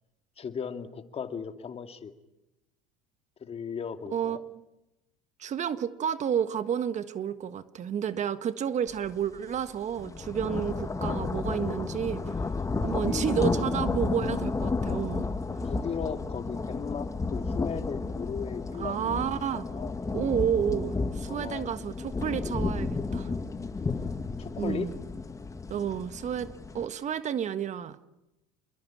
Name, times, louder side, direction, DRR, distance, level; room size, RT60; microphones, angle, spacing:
voice 1, 0.4-2.1 3.4-4.4 12.8-13.7 15.6-19.1 19.5-19.9 21.3-21.7 24.4-24.9, left 6 dB, 35° left, 7 dB, 2.4 m, -37 dB
voice 2, 4.1-4.6 5.4-12.2 12.8-15.3 18.8-19.7 20.1-23.3 24.6-25.0 25.7-28.0, right 8 dB, 40° right, 11 dB, 1.5 m, -31 dB
sound 1, 9.0-9.2 9.6-26.9, left 3 dB, 20° left, 1.7 m, -32 dB
27.5 x 22.0 x 8.7 m, 0.95 s
hypercardioid pair, 85°, 17 cm